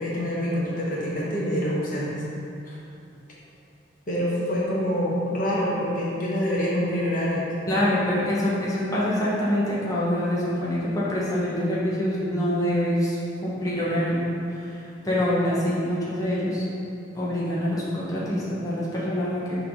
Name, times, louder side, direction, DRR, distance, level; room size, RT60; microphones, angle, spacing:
voice 1, 0.0-2.2 2.7-2.8 4.1-7.5, equal, 45° left, -6 dB, 1.0 m, -26 dB
voice 2, 7.7-16.6 17.1-19.6, left 1 dB, 20° left, -8 dB, 1.0 m, -25 dB
5.7 x 3.3 x 5.2 m, 2.6 s
head